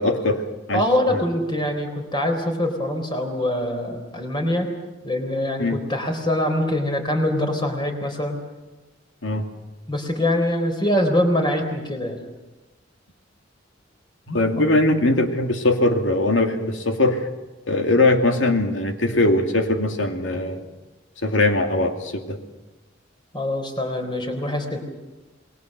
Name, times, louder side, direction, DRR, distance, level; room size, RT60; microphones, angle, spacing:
voice 1, 0.0-0.8 5.6-5.8 9.2-9.5 14.3-17.3 17.7-20.6 21.2-22.4, left 2 dB, 85° left, 5 dB, 2.5 m, -21 dB
voice 2, 0.7-4.7 5.0-8.4 9.9-12.2 23.3-24.8, left 1 dB, 25° left, 4 dB, 4.0 m, -24 dB
27.5 x 21.0 x 6.8 m, 1.1 s
head